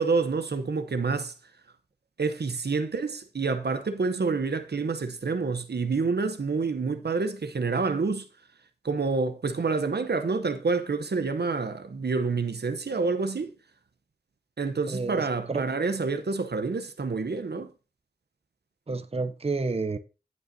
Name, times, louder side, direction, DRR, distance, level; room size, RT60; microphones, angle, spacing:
voice 1, 0.0-1.3 2.2-8.3 8.8-13.5 14.6-17.7, right 4 dB, 75° right, 0.8 m, -28 dB
voice 2, 14.9-15.7 18.9-20.0, right 3 dB, 35° right, 0.6 m, -30 dB
15.0 x 5.5 x 2.7 m
wide cardioid pair, 40°, 17 cm